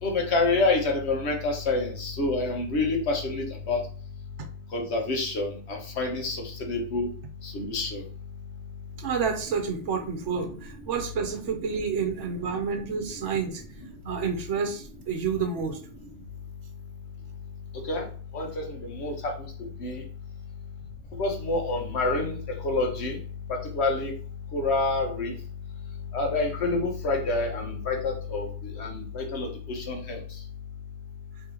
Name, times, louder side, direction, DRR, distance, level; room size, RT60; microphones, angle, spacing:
voice 1, 0.0-3.8 4.7-7.1 7.4-8.0 10.4-10.5 11.6-11.7 12.5-12.6 17.9-18.1 18.3-19.3 19.8-20.0 21.2-22.4 22.6-23.2 23.5-24.1 24.5-25.3 26.1-30.2, left 3 dB, 65° left, 1 dB, 1.2 m, -27 dB
voice 2, 9.0-13.6 14.0-15.8, right 6 dB, 80° right, 4 dB, 1.1 m, -29 dB
3.3 x 2.9 x 3.8 m, 0.43 s
omnidirectional pair, 1.2 m